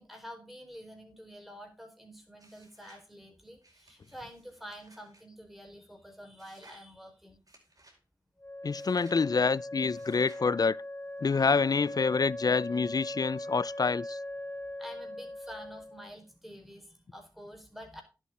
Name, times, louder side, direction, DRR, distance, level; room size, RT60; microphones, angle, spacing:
voice 1, 0.0-7.4 14.8-18.0, equal, ahead, 4.9 m, -48 dB
sound 1, 2.4-3.1 3.6-5.2 6.4-6.9 7.5-8.0 8.7-9.2 9.9-10.5, right 1 dB, 50° right, 5.0 m, -60 dB
Wind instrument woodwind instrument, 8.4-16.1, left 1 dB, 25° left, 3.7 m, -40 dB
voice 2, 8.6-10.8 11.2-14.2, left 4 dB, 55° left, 0.4 m, -27 dB
10.5 x 8.3 x 4.8 m
cardioid pair, 40°, 8 cm